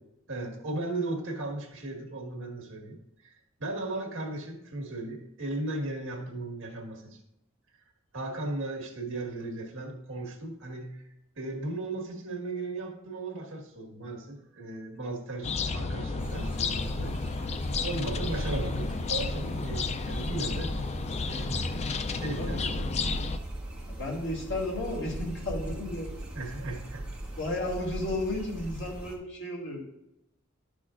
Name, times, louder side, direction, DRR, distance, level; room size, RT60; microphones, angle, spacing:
voice 1, 0.3-3.0 3.2-3.3 3.6-7.2 8.1-11.0 11.4-17.5 17.8-20.7 21.3-21.8 22.1-22.6 26.3-27.1, right 2 dB, 65° right, 2 dB, 1.6 m, -36 dB
sound 1, 15.4-23.4, left 4 dB, 30° left, 0.4 m, -32 dB
sound 2, 16.2-29.2, right 1 dB, 5° right, 1.4 m, -39 dB
voice 2, 22.4-22.9 23.9-26.1 27.4-29.8, left 1 dB, 60° left, -2 dB, 2.4 m, -33 dB
12.5 x 6.2 x 2.5 m, 0.86 s
head